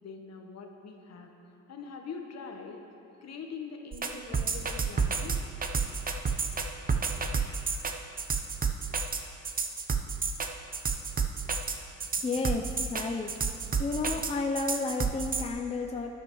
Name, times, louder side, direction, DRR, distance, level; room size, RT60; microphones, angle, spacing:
voice 1, 0.0-1.3 1.7-2.8 3.2-5.4 5.7-5.8, left 5 dB, 60° left, 3 dB, 1.2 m, -43 dB
sound 1, 3.9-15.5, right 5 dB, 30° right, 0.7 m, -30 dB
voice 2, 12.2-13.3 13.8-16.1, left 3 dB, 20° left, 3 dB, 0.5 m, -32 dB
12.5 x 10.5 x 3.1 m, 2.7 s
cardioid pair, 90°, 30 cm